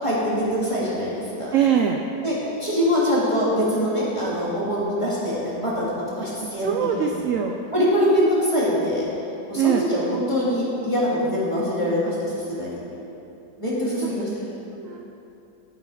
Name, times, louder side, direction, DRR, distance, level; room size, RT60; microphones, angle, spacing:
voice 1, 0.0-1.5 2.2-5.9 6.2-7.1 7.7-9.1 9.5-12.8 13.6-14.3 14.6-14.7, equal, 15° left, -8 dB, 2.5 m, -23 dB
voice 2, 1.5-2.0 6.6-7.6 9.5-9.8 14.0-14.1 14.8-15.1, right 8 dB, 75° right, 3 dB, 0.7 m, -23 dB
11.5 x 8.1 x 4.9 m, 2.9 s
omnidirectional pair, 1.9 m